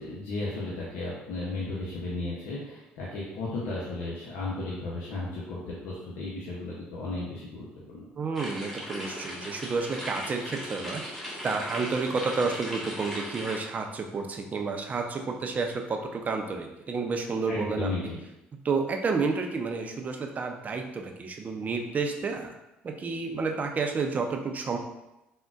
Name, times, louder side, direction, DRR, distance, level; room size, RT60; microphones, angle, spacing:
voice 1, 0.0-8.1 17.5-18.2, left 2 dB, 75° left, -6 dB, 0.6 m, -34 dB
voice 2, 8.2-11.0 11.4-17.9 18.6-22.5 22.8-24.8, right 4 dB, 35° right, 4 dB, 0.5 m, -30 dB
sound 1, 8.4-13.6, equal, 5° left, 1.2 m, -38 dB
3.6 x 2.1 x 2.4 m, 0.95 s
hypercardioid pair, 65°, 4 cm